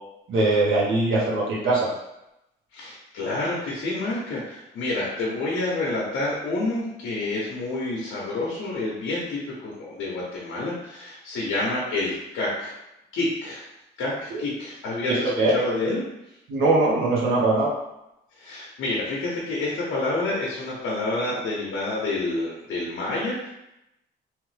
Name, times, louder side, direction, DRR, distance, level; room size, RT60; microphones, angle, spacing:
voice 1, 0.3-1.9 14.3-14.4 15.1-15.5 16.5-17.7, right 2 dB, 85° right, -4 dB, 0.9 m, -21 dB
voice 2, 2.7-12.7 13.1-13.6 14.0-16.0 18.4-23.5, left 2 dB, 80° left, -5 dB, 0.8 m, -28 dB
3.1 x 2.0 x 3.1 m, 0.88 s
cardioid pair, 90°, 20 cm